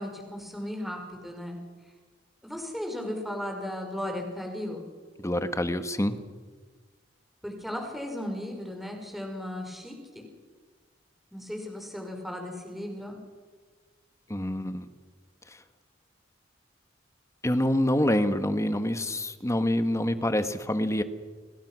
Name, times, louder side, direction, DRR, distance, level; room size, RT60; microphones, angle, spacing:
voice 1, 0.0-1.6 2.4-4.8 7.4-10.2 11.3-13.2, left 1 dB, ahead, 2 dB, 5.0 m, -36 dB
voice 2, 5.2-6.2 14.3-14.9 15.5-15.6 17.4-21.0, left 1 dB, 15° left, 10 dB, 1.4 m, -26 dB
29.0 x 21.0 x 6.2 m, 1.4 s
head